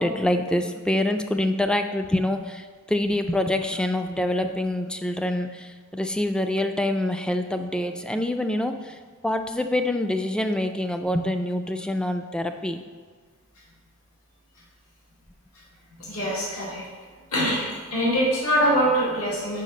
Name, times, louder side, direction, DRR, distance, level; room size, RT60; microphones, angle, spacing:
voice 1, 0.0-8.9 9.2-12.8, left 1 dB, 5° left, 7 dB, 0.3 m, -26 dB
voice 2, 16.0-16.8 17.3-19.6, equal, 80° left, -6 dB, 1.9 m, -24 dB
5.6 x 5.0 x 5.1 m, 1.6 s
head